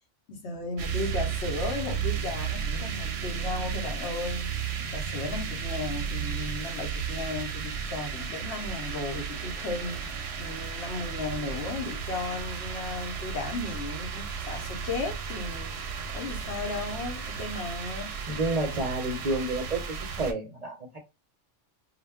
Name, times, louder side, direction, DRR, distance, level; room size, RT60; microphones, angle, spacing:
voice 1, 0.3-15.8 16.1-18.1, left 3 dB, 65° left, 1.0 m, -35 dB
sound 1, 0.8-20.3, right 7 dB, 70° right, 0.8 m, -34 dB
voice 2, 18.3-21.0, right 2 dB, 40° right, 0.7 m, -30 dB
2.4 x 2.1 x 3.3 m
omnidirectional pair, 1.2 m